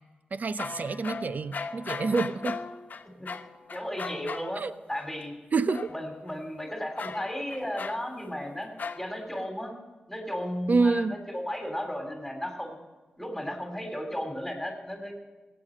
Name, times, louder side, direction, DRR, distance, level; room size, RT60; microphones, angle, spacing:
voice 1, 0.3-2.6 4.6-4.7 5.5-5.9 10.7-11.2, right 4 dB, 55° right, 14 dB, 0.7 m, -27 dB
sound 1, 0.6-4.6 5.0-5.2 5.7-6.3 7.0-8.5 8.8-9.3, left 5 dB, 60° left, 0.8 m, -38 dB
voice 2, 3.7-4.6 4.9-5.3 5.9-8.7 9.0-9.7 10.1-12.8 13.2-15.1, equal, 5° left, 3 dB, 3.2 m, -34 dB
15.5 x 8.9 x 7.4 m, 1.2 s
cardioid pair, 50°, 3 cm